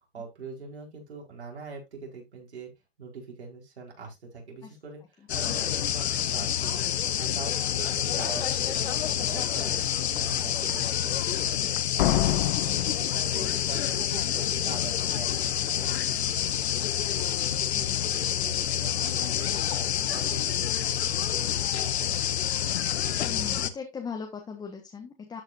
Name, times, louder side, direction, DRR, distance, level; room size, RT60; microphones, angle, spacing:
voice 1, 0.1-2.7 3.0-6.9 7.2-9.8 10.1-12.4 12.9-16.7 17.1-22.2, right 3 dB, 85° right, 0 dB, 4.9 m, -43 dB
sound 1, 5.3-23.7, left 10 dB, 80° left, 1.1 m, -28 dB
Slam, 12.0-13.9, left 14 dB, 50° left, 0.8 m, -27 dB
voice 2, 23.2-25.4, left 5 dB, 15° left, 2 dB, 1.3 m, -39 dB
12.5 x 5.6 x 2.6 m, 0.20 s
hypercardioid pair, 135°, 32 cm